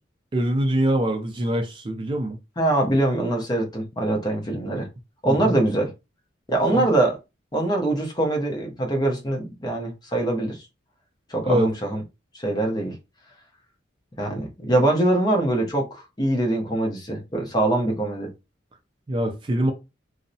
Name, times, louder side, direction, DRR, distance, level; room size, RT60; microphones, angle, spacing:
voice 1, 0.3-2.4 5.3-5.5 6.7-6.9 11.4-11.7 19.1-19.7, right 1 dB, 25° right, 0.3 m, -23 dB
voice 2, 2.6-4.9 5.2-5.9 6.5-7.2 7.5-10.6 11.3-12.0 12.3-13.0 14.2-18.3, right 1 dB, 20° left, 0.6 m, -23 dB
2.6 x 2.0 x 2.6 m
head